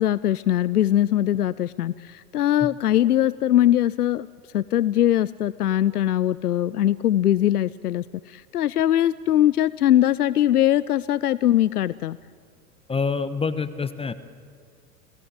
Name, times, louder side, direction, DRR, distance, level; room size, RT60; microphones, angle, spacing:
voice 1, 0.0-4.3 4.5-12.2, left 12 dB, 80° left, 18 dB, 0.6 m, -21 dB
voice 2, 12.9-14.1, left 5 dB, 15° left, 12 dB, 1.0 m, -26 dB
29.5 x 17.5 x 8.1 m, 2.3 s
hypercardioid pair, 90°, 44 cm